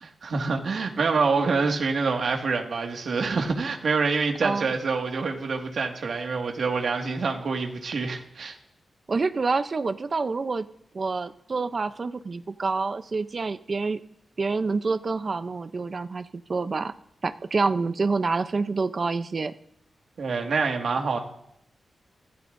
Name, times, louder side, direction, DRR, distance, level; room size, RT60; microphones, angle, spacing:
voice 1, 0.0-8.6 20.2-21.2, right 4 dB, 60° right, 2 dB, 1.9 m, -26 dB
voice 2, 9.1-10.6 10.9-14.0 14.4-16.9 17.2-19.6, right 4 dB, 35° right, 11 dB, 0.6 m, -27 dB
25.0 x 15.5 x 2.6 m, 0.77 s
wide cardioid pair, 150°, 0 cm